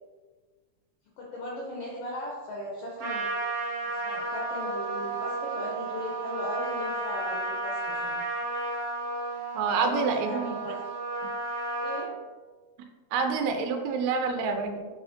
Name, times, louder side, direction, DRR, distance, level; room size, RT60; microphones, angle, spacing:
voice 1, 1.2-3.3 3.8-7.8 8.0-8.2 9.6-10.8 11.8-12.1, left 1 dB, 70° left, -3 dB, 1.5 m, -37 dB
Trumpet, 3.0-12.1, right 2 dB, 55° right, 1.7 m, -32 dB
voice 2, 9.6-10.7 13.1-14.9, right 5 dB, 80° right, 5 dB, 1.8 m, -28 dB
4.6 x 4.2 x 2.6 m, 1.4 s
omnidirectional pair, 3.4 m